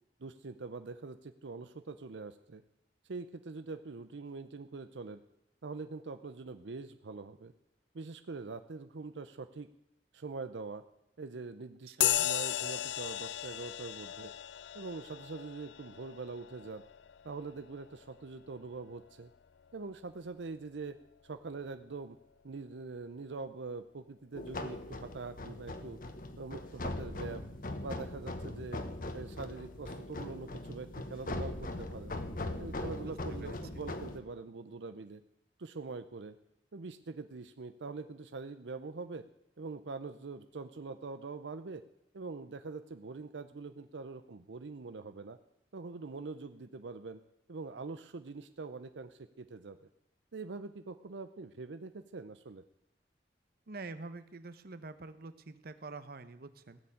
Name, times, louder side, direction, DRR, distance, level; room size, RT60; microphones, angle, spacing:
voice 1, 0.2-2.6 3.0-5.2 5.6-7.5 7.9-9.7 10.1-10.8 11.2-14.3 14.7-16.8 17.2-19.3 19.7-21.0 21.2-22.2 22.4-26.0 26.4-27.4 27.8-28.8 29.1-32.1 32.6-35.2 35.6-36.4 36.7-39.2 39.6-41.8 42.1-45.4 45.7-47.2 47.5-49.9 50.3-52.6, right 4 dB, 85° right, 10 dB, 0.6 m, -43 dB
voice 2, 11.9-12.3 33.1-33.6 53.7-56.8, right 3 dB, 60° right, 12 dB, 0.9 m, -46 dB
sound 1, 12.0-19.9, left 12 dB, 80° left, 0.4 m, -37 dB
sound 2, 24.3-34.2, left 1 dB, 50° left, 1.2 m, -40 dB
16.5 x 7.0 x 8.7 m, 0.85 s
head